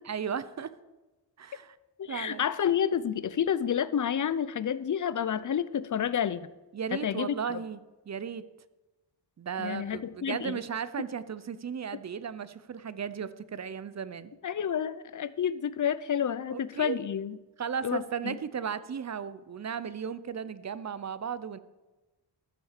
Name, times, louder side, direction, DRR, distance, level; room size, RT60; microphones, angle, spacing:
voice 1, 0.1-0.7 1.4-1.8 2.1-2.5 6.7-7.8 8.1-8.4 9.4-14.3 16.5-17.0 17.6-21.6, right 7 dB, 40° right, 15 dB, 0.6 m, -35 dB
voice 2, 2.0-6.5 6.9-7.6 9.6-10.6 14.4-17.4 17.8-18.4, left 8 dB, 45° left, 16 dB, 0.6 m, -30 dB
14.0 x 6.2 x 6.6 m, 1.1 s
wide cardioid pair, 90°, 43 cm